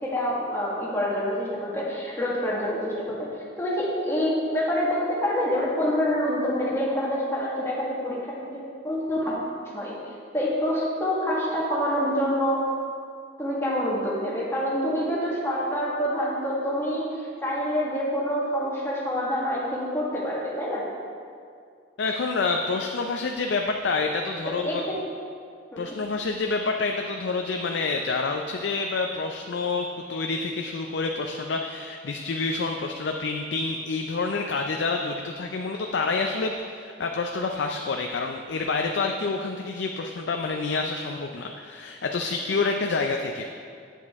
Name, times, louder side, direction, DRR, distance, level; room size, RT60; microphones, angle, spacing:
voice 1, 0.0-3.3 3.6-8.4 8.8-9.3 9.7-10.0 10.3-12.6 13.4-17.1 17.4-20.8 24.4-25.0 25.7-25.9, equal, 15° left, -6 dB, 1.5 m, -26 dB
voice 2, 22.0-24.9 25.8-43.5, left 3 dB, 70° left, 3 dB, 0.4 m, -28 dB
8.3 x 7.4 x 3.5 m, 2.3 s
head